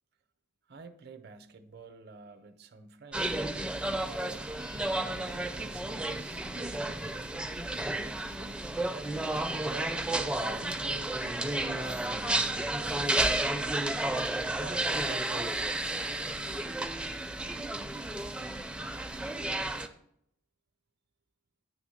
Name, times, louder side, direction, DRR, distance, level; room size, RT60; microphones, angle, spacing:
voice 1, 0.7-3.5 3.7-4.5 5.3-7.4 7.8-8.7 9.6-10.0 10.3-13.9 14.5-15.7, right 3 dB, 55° right, 0.6 m, -48 dB
sound 1, 3.1-19.9, right 2 dB, 5° right, 0.4 m, -32 dB
9.1 x 3.4 x 6.4 m
head